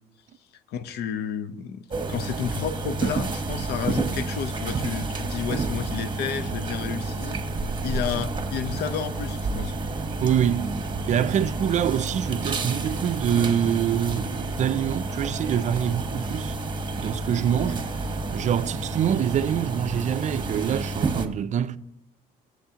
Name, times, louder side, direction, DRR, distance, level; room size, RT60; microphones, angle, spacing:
voice 1, 0.7-7.4 7.8-9.7, left 7 dB, 75° left, 0.7 m, -31 dB
sound 1, 1.9-21.3, right 3 dB, 25° right, 1.1 m, -30 dB
voice 2, 10.2-10.8 11.1-16.6 17.0-17.9 18.3-21.8, right 9 dB, 45° right, 0.4 m, -25 dB
17.5 x 7.7 x 2.8 m
cardioid pair, 110°, 17 cm